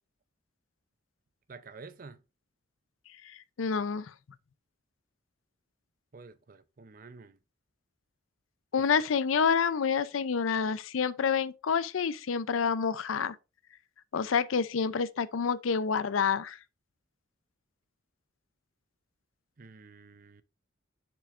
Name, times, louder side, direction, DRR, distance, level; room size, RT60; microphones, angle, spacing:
voice 1, 1.5-2.2 6.1-7.4 19.6-20.4, right 4 dB, 45° right, 0.5 m, -49 dB
voice 2, 3.6-4.1 8.7-13.4 14.1-16.6, left 6 dB, 85° left, 0.5 m, -28 dB
6.6 x 6.1 x 2.5 m
head